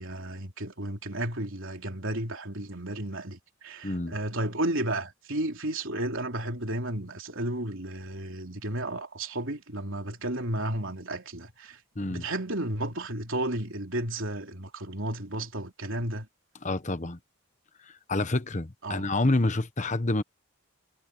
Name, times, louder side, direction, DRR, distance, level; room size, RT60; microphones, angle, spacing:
voice 1, 0.0-11.8 12.1-16.3 18.8-19.1, right 1 dB, 60° right, 3.6 m, -33 dB
voice 2, 3.8-4.1 12.0-12.3 16.6-17.2 18.1-20.2, left 2 dB, 30° left, 1.1 m, -27 dB
head